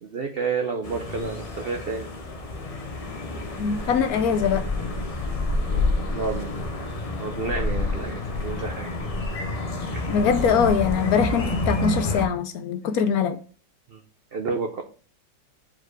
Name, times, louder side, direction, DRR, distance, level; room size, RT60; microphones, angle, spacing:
voice 1, 0.0-2.1 5.7-6.8 7.2-8.9 9.9-10.0 13.9-14.0 14.3-14.8, right 4 dB, 80° right, 0.5 m, -30 dB
sound 1, 0.8-12.3, left 2 dB, 55° left, 0.4 m, -28 dB
voice 2, 3.6-4.6 10.1-13.4, left 7 dB, 70° left, 0.9 m, -22 dB
4.8 x 4.5 x 4.6 m
omnidirectional pair, 1.9 m